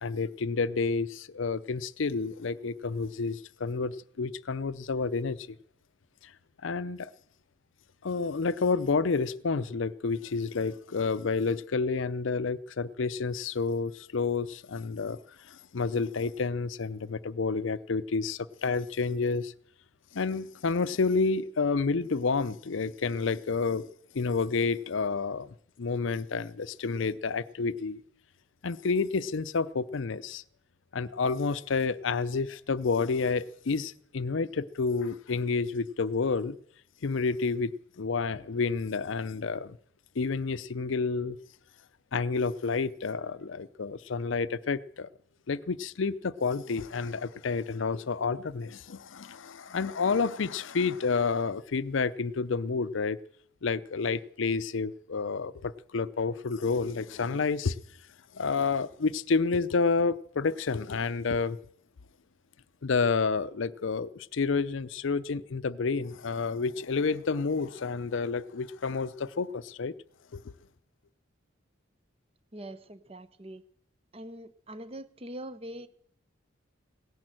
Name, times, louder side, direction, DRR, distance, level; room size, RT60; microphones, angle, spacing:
voice 1, 0.0-5.6 6.6-7.1 8.0-15.2 15.5-19.5 20.1-23.9 24.1-25.5 25.8-28.0 28.6-30.4 30.9-36.6 37.0-39.8 40.2-41.4 42.1-45.1 45.5-53.2 53.6-57.8 58.3-61.6 62.8-69.9 70.3-70.5, left 4 dB, 70° left, 0.6 m, -29 dB
voice 2, 72.5-73.6 74.1-75.9, right 1 dB, 30° right, 0.8 m, -43 dB
17.5 x 10.5 x 7.6 m
head